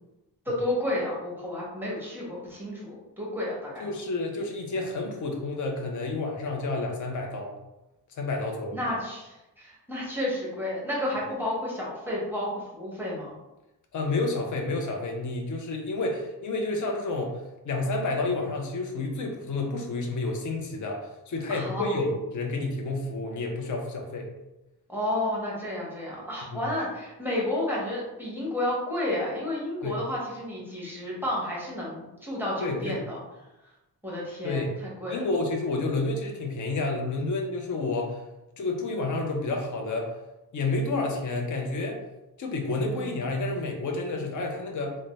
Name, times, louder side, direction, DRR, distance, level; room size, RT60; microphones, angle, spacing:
voice 1, 0.4-3.8 8.7-13.4 21.5-22.0 24.9-33.2 34.0-35.2 42.9-43.2, left 1 dB, 5° right, -5 dB, 0.8 m, -31 dB
voice 2, 3.8-7.5 8.1-8.8 13.9-24.3 26.5-26.6 29.8-30.0 32.6-33.0 34.4-34.8 35.1-38.2 38.6-40.1 40.5-42.0 42.4-45.0, left 2 dB, 50° left, 1 dB, 0.6 m, -30 dB
3.3 x 2.1 x 3.9 m, 0.99 s
wide cardioid pair, 180°, 40 cm